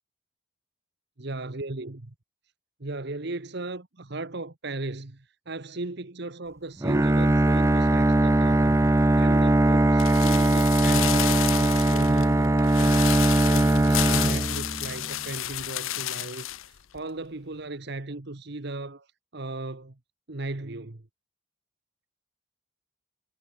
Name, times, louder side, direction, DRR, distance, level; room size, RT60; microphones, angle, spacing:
voice 1, 1.2-2.1 2.8-19.1 19.3-20.0 20.3-21.1, right 2 dB, 55° right, 1.3 m, -37 dB
Bowed string instrument, 6.8-15.0, right 1 dB, 15° right, 0.4 m, -21 dB
sound 1, 10.0-16.7 16.9-17.0, left 14 dB, 75° left, 0.7 m, -31 dB
head